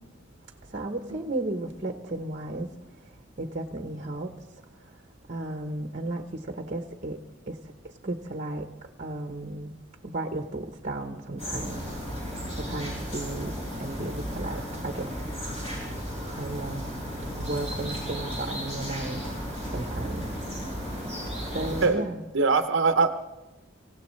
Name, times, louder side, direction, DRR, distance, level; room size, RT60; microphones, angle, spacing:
voice 1, 0.7-2.7 3.4-4.3 5.3-7.2 7.5-7.6 8.0-8.7 9.0-9.7 10.0-11.8 12.6-15.1 16.3-16.8 17.4-19.3 19.7-20.2 21.5-22.2, right 2 dB, 40° right, 5 dB, 0.9 m, -34 dB
sound 1, 11.4-21.9, equal, 30° left, 6.9 m, -34 dB
voice 2, 22.3-23.1, right 4 dB, 65° right, 8 dB, 0.7 m, -22 dB
26.0 x 16.5 x 3.2 m, 1.0 s
head